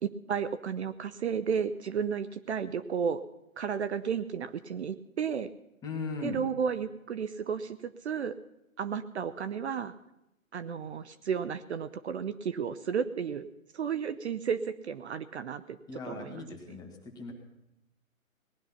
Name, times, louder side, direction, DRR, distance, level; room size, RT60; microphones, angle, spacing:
voice 1, 0.0-3.2 3.6-5.5 6.2-8.3 8.8-9.9 10.5-13.5 13.7-15.8 16.0-16.4 16.7-16.8, right 7 dB, 55° right, 13 dB, 0.7 m, -33 dB
voice 2, 5.8-6.4 15.9-17.3, left 4 dB, 10° left, 1 dB, 1.4 m, -38 dB
19.0 x 11.5 x 5.7 m, 0.87 s
hypercardioid pair, 150°, 42 cm